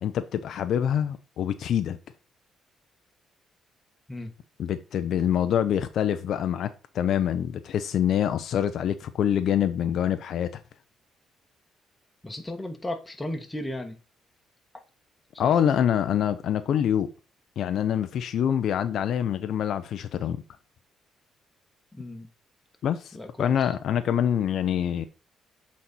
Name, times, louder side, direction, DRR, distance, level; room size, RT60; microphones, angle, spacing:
voice 1, 0.0-2.0 4.6-10.6 15.4-17.1 17.6-20.4 22.8-25.1, left 9 dB, 70° left, 0.6 m, -25 dB
voice 2, 12.2-14.0 15.4-15.6 21.9-22.3 23.1-23.7, left 1 dB, 15° left, 1.4 m, -35 dB
7.7 x 4.2 x 4.0 m
cardioid pair, 90°, 0 cm